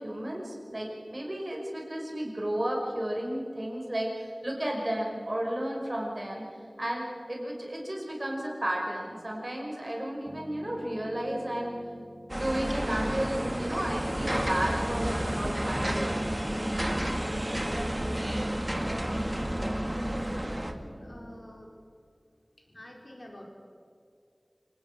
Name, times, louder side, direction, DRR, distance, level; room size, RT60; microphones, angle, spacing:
voice 1, 0.0-6.5 6.8-11.7 12.3-16.2, right 1 dB, 45° right, -1 dB, 5.8 m, -33 dB
sound 1, 10.3-21.4, equal, ahead, 2.2 m, -46 dB
sound 2, 12.3-20.7, right 1 dB, 20° right, 1.9 m, -30 dB
voice 2, 19.8-21.7 22.7-23.4, left 1 dB, 55° left, 0 dB, 4.9 m, -48 dB
27.0 x 19.0 x 6.8 m, 2.3 s
wide cardioid pair, 40°, 0 cm